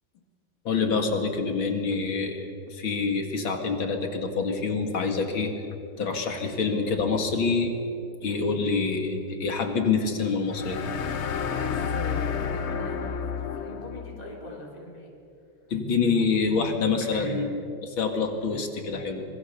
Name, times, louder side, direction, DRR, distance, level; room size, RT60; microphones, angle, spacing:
voice 1, 0.6-5.5 6.0-7.7 8.2-10.8 15.7-19.2, left 4 dB, 65° left, 5 dB, 2.9 m, -26 dB
sound 1, 10.5-14.2, left 6 dB, 85° left, 0.6 m, -30 dB
voice 2, 11.5-13.2 13.5-15.1 17.1-17.6, left 1 dB, 15° left, -1 dB, 3.5 m, -41 dB
26.0 x 21.0 x 6.9 m, 2.6 s
omnidirectional pair, 2.4 m